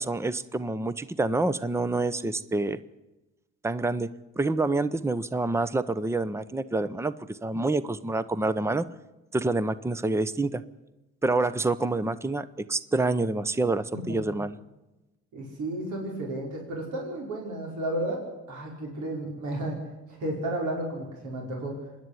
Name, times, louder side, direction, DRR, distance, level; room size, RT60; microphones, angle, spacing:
voice 1, 0.0-2.8 3.6-4.1 4.4-8.9 9.3-10.6 11.2-14.6, right 2 dB, 10° right, 15 dB, 0.8 m, -27 dB
voice 2, 15.3-18.2 18.5-19.8 20.1-21.8, right 1 dB, 75° right, -1 dB, 5.3 m, -32 dB
25.5 x 10.5 x 9.7 m, 1.0 s
cardioid pair, 90°, 30 cm